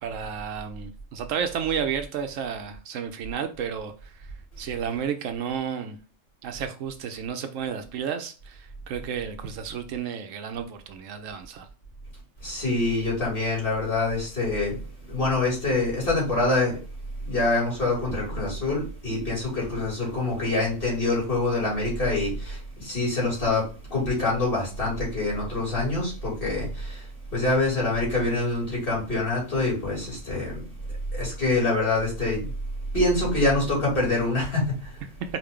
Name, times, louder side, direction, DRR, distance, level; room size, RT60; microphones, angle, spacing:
voice 1, 0.0-6.0 6.4-11.7, right 7 dB, 75° right, 0.9 m, -32 dB
voice 2, 12.4-14.8 15.1-16.8 17.2-23.6 23.9-27.0 27.3-30.6 31.1-32.5 32.9-34.7, left 2 dB, 40° left, 2.8 m, -25 dB
4.9 x 2.5 x 3.6 m
omnidirectional pair, 1.4 m